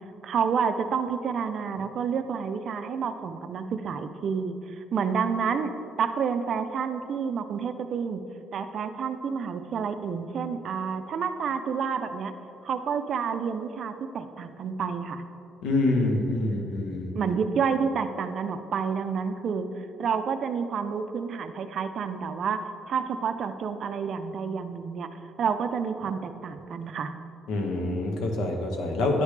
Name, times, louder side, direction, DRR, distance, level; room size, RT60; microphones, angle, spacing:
voice 1, 0.2-5.7 6.0-8.2 8.5-12.3 12.6-15.2 17.1-19.7 20.0-22.6 22.9-25.1 25.4-27.1, right 6 dB, 50° right, 9 dB, 0.4 m, -29 dB
voice 2, 15.6-17.1 27.5-29.2, left 2 dB, 85° left, 2 dB, 1.0 m, -26 dB
9.9 x 4.9 x 3.2 m, 2.6 s
cardioid pair, 150°, 0 cm